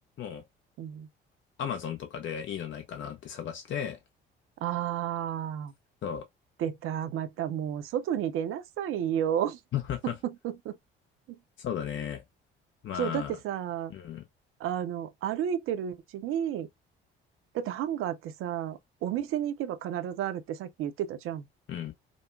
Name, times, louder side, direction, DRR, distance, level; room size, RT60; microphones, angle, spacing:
voice 1, 0.8-1.1 4.6-5.7 6.6-9.6 10.0-10.8 11.3-11.4 12.9-13.9 14.6-16.7 17.5-21.5, right 10 dB, 45° right, 0.6 m, -32 dB
voice 2, 1.6-4.0 6.0-6.2 9.7-10.2 11.6-12.2 12.8-13.4 13.9-14.2 21.7-21.9, left 9 dB, 40° left, 0.8 m, -34 dB
5.1 x 2.0 x 2.3 m
figure-of-eight pair, 50°, 29 cm